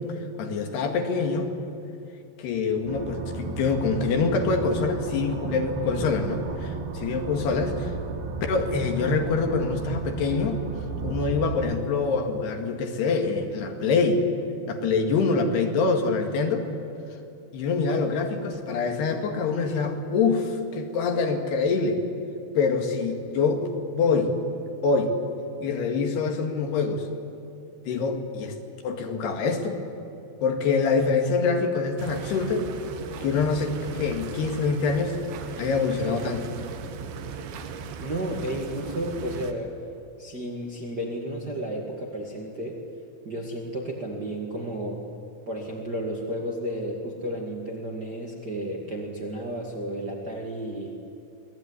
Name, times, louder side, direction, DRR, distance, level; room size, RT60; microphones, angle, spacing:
voice 1, 0.4-1.5 2.4-7.9 8.4-10.6 11.0-14.2 14.7-16.7 17.5-22.0 22.6-23.6 23.9-24.3 24.8-25.2 25.6-27.1 27.9-28.5 28.8-29.8 30.4-32.7 33.2-35.2 35.6-36.5, left 4 dB, 70° left, 5 dB, 4.0 m, -25 dB
sound 1, 2.9-11.8, right 5 dB, 55° right, 1.8 m, -34 dB
sound 2, 32.0-39.5, right 6 dB, 80° right, 3.8 m, -37 dB
voice 2, 38.0-39.7 40.2-42.8 43.2-45.0 45.5-50.9, right 1 dB, 35° right, 0 dB, 1.8 m, -32 dB
26.0 x 19.0 x 9.8 m, 2.7 s
omnidirectional pair, 5.1 m